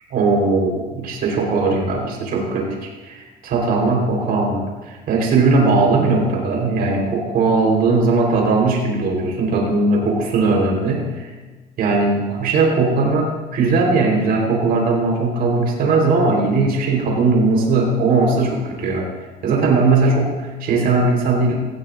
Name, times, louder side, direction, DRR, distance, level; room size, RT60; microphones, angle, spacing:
voice 1, 0.1-11.3 11.8-19.1 19.4-21.5, right 3 dB, 65° right, 0 dB, 4.3 m, -19 dB
18.0 x 15.0 x 2.6 m, 1.3 s
cardioid pair, 110°, 17 cm